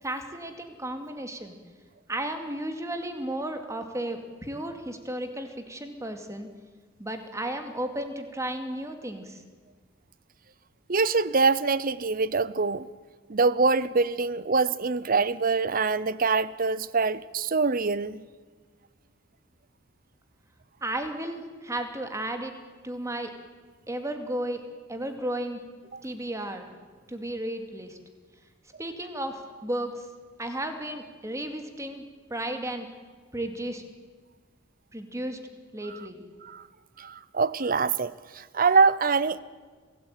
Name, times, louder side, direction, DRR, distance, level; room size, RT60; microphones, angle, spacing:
voice 1, 0.0-1.6 2.1-6.5 7.0-9.4 20.8-22.5 22.8-23.3 23.9-24.6 24.9-25.6 26.0-26.7 27.1-28.0 28.8-30.0 30.4-32.0 32.3-32.9 33.3-33.8 34.9-35.4 35.7-36.2, right 1 dB, 15° right, 2.4 m, -34 dB
voice 2, 10.9-12.9 13.3-18.2 25.9-26.0 36.4-36.6 37.0-39.4, right 4 dB, 45° right, 0.8 m, -24 dB
27.5 x 17.0 x 9.1 m
head